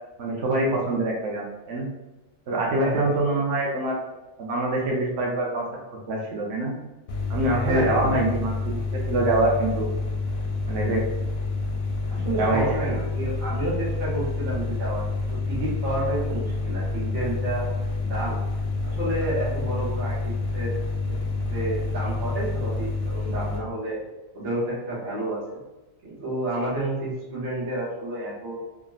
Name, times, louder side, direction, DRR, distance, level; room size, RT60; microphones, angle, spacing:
voice 1, 0.2-1.9 2.5-4.0 4.4-5.6 6.1-6.8 7.3-9.9 10.6-11.0 12.1-12.6 12.9-13.0, right 2 dB, 65° right, -2 dB, 0.8 m, -25 dB
voice 2, 2.8-3.2 7.5-8.1 12.1-15.0 15.3-17.6 18.0-18.4 18.8-20.8 21.5-24.0 24.3-25.4 26.0-28.6, right 1 dB, 90° right, -7 dB, 1.5 m, -30 dB
sound 1, 7.1-23.6, left 3 dB, 65° left, 0.7 m, -28 dB
3.5 x 2.0 x 2.3 m, 1.1 s
omnidirectional pair, 1.4 m